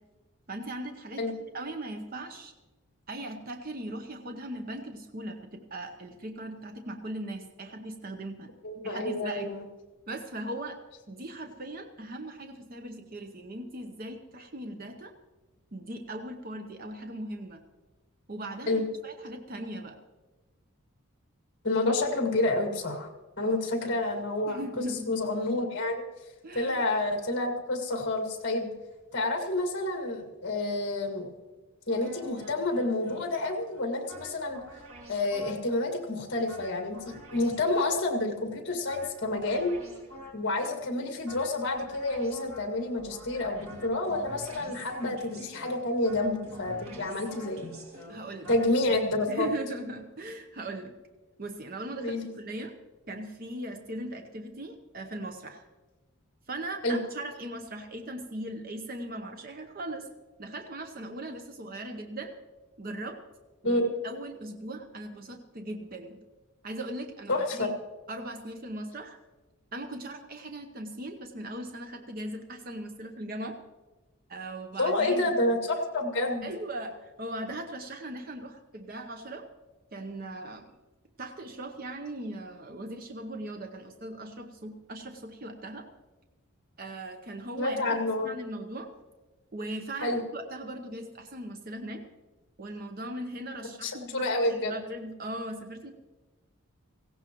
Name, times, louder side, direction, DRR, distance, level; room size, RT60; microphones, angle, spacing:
voice 1, 0.5-1.2 1.5-2.5 3.1-8.5 8.8-9.5 10.1-10.8 11.1-15.1 15.7-17.6 18.3-20.0 23.4-23.6 24.5-25.1 26.4-26.8 48.1-48.5 49.3-51.0 51.4-52.7 53.1-55.7 56.5-60.1 60.4-62.3 62.8-63.2 63.6-66.2 66.6-67.7 68.1-69.2 69.7-73.6 74.3-75.3 76.4-79.5 79.9-80.7 81.2-85.9 86.8-88.0 88.2-88.9 89.5-92.0 92.6-95.9, right 1 dB, 40° right, 5 dB, 0.8 m, -39 dB
voice 2, 8.6-9.6 18.7-18.8 21.6-23.1 23.4-26.0 26.5-28.7 29.1-31.3 31.9-34.6 35.1-39.7 40.3-47.8 48.5-49.5 52.0-52.3 56.8-57.0 63.6-63.9 67.3-67.7 74.8-76.5 87.6-88.4 90.0-90.2 93.8-94.7, left 2 dB, 55° left, 3 dB, 2.0 m, -29 dB
sound 1, 31.9-35.8 36.5-38.2 38.9-40.6 41.3-49.0, equal, 70° right, 2.1 m, -48 dB
17.5 x 16.0 x 3.0 m, 1.2 s
head